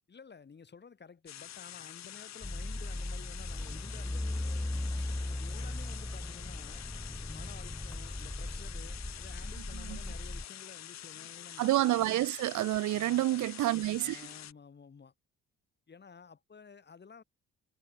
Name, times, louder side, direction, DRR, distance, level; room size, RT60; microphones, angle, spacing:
voice 1, 0.1-6.9 7.2-11.6 12.1-12.2 12.9-13.5 13.9-15.1 15.9-17.2, left 5 dB, 35° left, 2.8 m, -53 dB
sound 1, 1.3-14.5, left 12 dB, 65° left, 1.1 m, -47 dB
sound 2, 2.4-10.4, left 1 dB, 5° left, 1.1 m, -38 dB
voice 2, 11.6-14.2, right 16 dB, 75° right, 0.6 m, -29 dB
cardioid pair, 90°, 30 cm